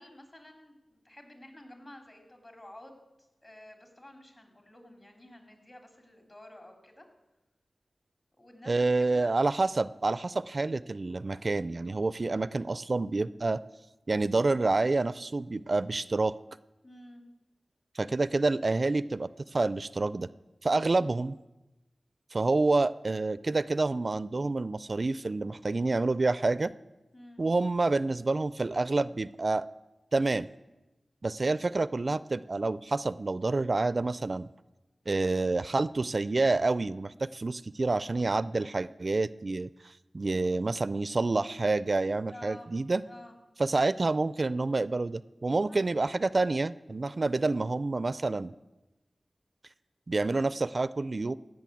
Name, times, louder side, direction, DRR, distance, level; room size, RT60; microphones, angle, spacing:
voice 1, 0.0-2.9 3.4-7.0 8.4-9.3 16.8-17.2 20.7-21.1 27.1-27.4 42.3-42.7 43.0-43.3 45.7-45.8, left 1 dB, 40° left, 4 dB, 3.2 m, -51 dB
voice 2, 8.7-13.6 14.1-16.3 18.0-20.3 20.6-21.4 22.3-26.7 27.4-29.7 30.1-30.5 31.2-34.5 35.1-43.0 43.6-48.5 50.1-51.3, right 3 dB, 55° right, 17 dB, 0.4 m, -28 dB
15.5 x 6.4 x 9.1 m, 1.0 s
wide cardioid pair, 55°, 0 cm